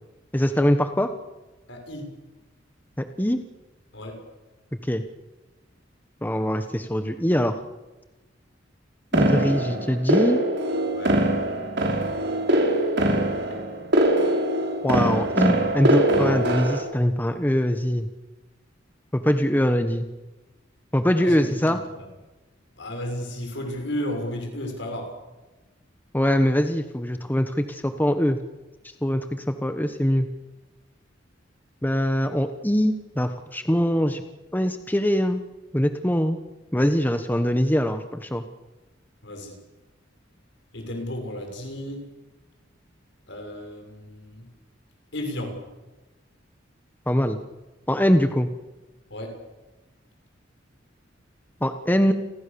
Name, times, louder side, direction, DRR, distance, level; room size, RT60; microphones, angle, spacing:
voice 1, 0.3-1.1 3.0-3.4 4.8-5.0 6.2-7.6 9.1-10.4 14.8-18.1 19.1-20.1 20.9-21.8 26.1-28.4 29.0-30.3 31.8-34.2 34.5-35.4 35.7-36.4 36.7-38.4 47.1-47.4 47.9-48.5 51.6-52.1, equal, 10° left, 8 dB, 1.1 m, -22 dB
voice 2, 1.7-2.1 3.9-4.3 10.9-11.3 12.5-13.2 13.5-13.6 21.2-22.1 22.8-25.2 39.2-39.6 40.7-42.1 43.3-44.5 45.1-45.7 49.1-49.4, left 1 dB, 65° left, 4 dB, 6.6 m, -34 dB
sound 1, 9.1-16.8, right 1 dB, 60° right, 4.8 m, -22 dB
29.5 x 21.5 x 7.0 m, 1.1 s
head